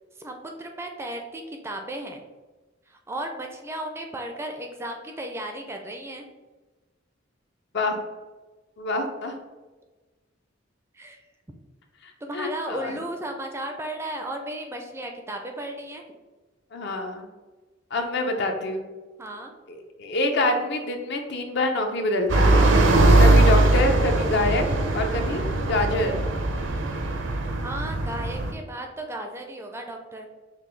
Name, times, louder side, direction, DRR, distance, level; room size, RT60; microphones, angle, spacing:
voice 1, 0.2-2.2 2.9-6.3 10.9-11.2 12.2-16.1 19.2-19.5 27.6-30.3, right 1 dB, 15° right, 3 dB, 0.4 m, -35 dB
voice 2, 8.8-9.4 12.0-12.9 16.7-17.3 17.9-18.8 19.7-22.7 23.2-24.6 24.9-26.2, left 2 dB, 60° left, 4 dB, 0.6 m, -26 dB
sound 1, 22.3-28.5, right 2 dB, 70° right, 0.5 m, -20 dB
5.7 x 2.2 x 3.2 m, 1.2 s
head